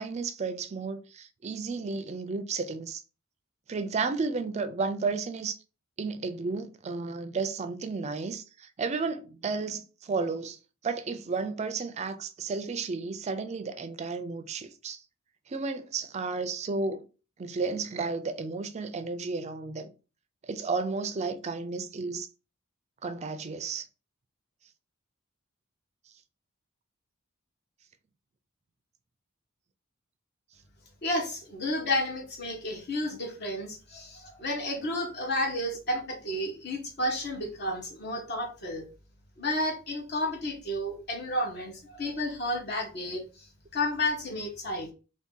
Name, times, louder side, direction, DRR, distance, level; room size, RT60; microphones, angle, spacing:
voice 1, 0.0-3.0 3.7-5.6 6.0-10.6 10.8-15.0 15.5-17.1 17.4-19.9 20.4-22.3 23.0-23.9, right 4 dB, 30° right, 0.4 m, -32 dB
voice 2, 31.0-38.9 39.4-43.5 43.7-44.9, left 1 dB, 50° left, 1.0 m, -31 dB
2.7 x 2.6 x 3.7 m
head